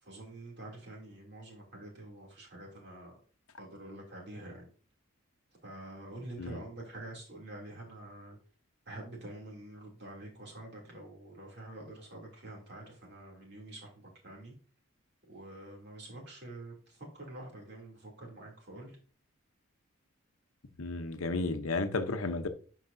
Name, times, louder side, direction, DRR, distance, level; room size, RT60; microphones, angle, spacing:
voice 1, 0.0-3.2 3.6-4.7 5.6-8.4 8.9-14.5 15.3-19.0, right 1 dB, 50° right, 2.7 m, -47 dB
voice 2, 20.8-22.5, left 3 dB, 80° left, 0.8 m, -33 dB
11.5 x 4.7 x 2.6 m
head